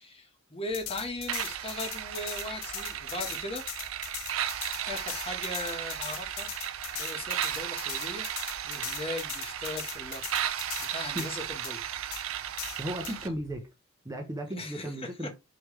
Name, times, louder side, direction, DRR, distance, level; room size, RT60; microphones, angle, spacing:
voice 1, 0.0-3.6 4.9-6.5 6.9-8.3 8.6-10.5 10.8-11.9 13.1-13.3 14.5-14.9 15.2-15.3, left 2 dB, 30° left, 1.2 m, -38 dB
sound 1, 0.6-13.6, equal, 60° left, 1.4 m, -55 dB
sound 2, 0.7-10.9 11.2-11.3 11.6-11.7 12.1-12.2 12.6-13.2, left 14 dB, 80° left, 0.4 m, -40 dB
sound 3, 1.3-13.3, right 10 dB, 90° right, 0.5 m, -35 dB
voice 2, 12.8-13.7 14.0-15.3, equal, 15° right, 0.7 m, -35 dB
4.9 x 3.1 x 3.1 m
head